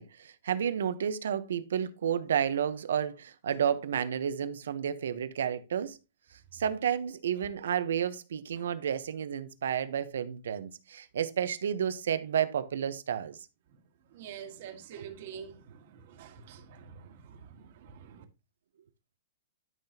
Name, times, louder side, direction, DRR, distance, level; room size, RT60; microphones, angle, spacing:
voice 1, 0.0-6.0 6.5-13.4, right 8 dB, 80° right, 1.0 m, -31 dB
voice 2, 14.0-18.2, right 8 dB, 45° right, 1.7 m, -47 dB
12.5 x 5.9 x 2.9 m
hypercardioid pair, 170°, 0 cm